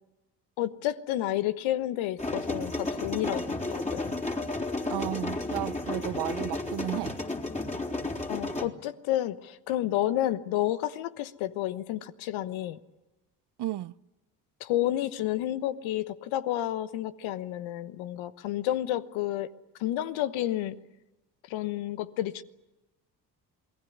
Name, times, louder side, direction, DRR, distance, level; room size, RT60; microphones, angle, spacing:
voice 1, 0.6-4.1 8.3-12.8 14.6-19.5 19.8-20.8 21.4-22.4, left 13 dB, 65° left, 1.3 m, -30 dB
sound 1, 2.2-8.7, left 2 dB, 15° left, 3.6 m, -32 dB
voice 2, 4.8-7.2 13.6-13.9, right 14 dB, 55° right, 0.8 m, -33 dB
28.0 x 19.0 x 9.5 m
hypercardioid pair, 45°, 50 cm